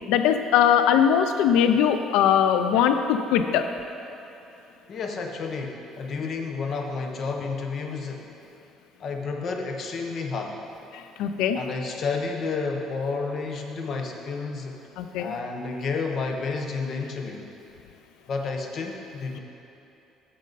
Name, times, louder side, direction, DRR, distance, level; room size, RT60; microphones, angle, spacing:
voice 1, 0.1-3.7 11.2-11.6 15.0-15.3, left 8 dB, 85° left, 8 dB, 0.4 m, -20 dB
voice 2, 4.9-8.3 9.0-10.6 11.5-14.8 15.2-17.5 18.3-19.4, left 4 dB, 45° left, 3 dB, 0.8 m, -31 dB
9.0 x 6.4 x 4.0 m, 3.0 s
cardioid pair, 145°, 0 cm